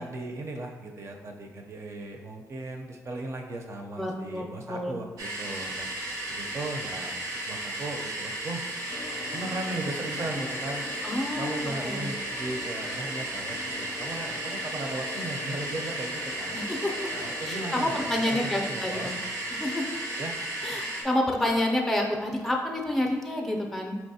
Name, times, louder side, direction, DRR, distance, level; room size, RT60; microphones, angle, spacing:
voice 1, 0.0-5.9 6.3-7.1 7.4-8.6 9.3-10.9 11.4-16.6 17.1-19.3 20.2-20.3, right 2 dB, 50° right, 2 dB, 0.6 m, -37 dB
voice 2, 4.0-5.0 11.0-12.1 16.5-17.1 17.5-19.2 19.5-19.9 20.6-23.9, left 1 dB, 5° left, 2 dB, 0.5 m, -29 dB
sound 1, 5.2-21.0, right 1 dB, 85° right, 0.8 m, -34 dB
sound 2, 8.9-18.3, left 4 dB, 80° left, 0.4 m, -43 dB
4.5 x 2.9 x 2.8 m, 1.3 s
cardioid pair, 85°, 6 cm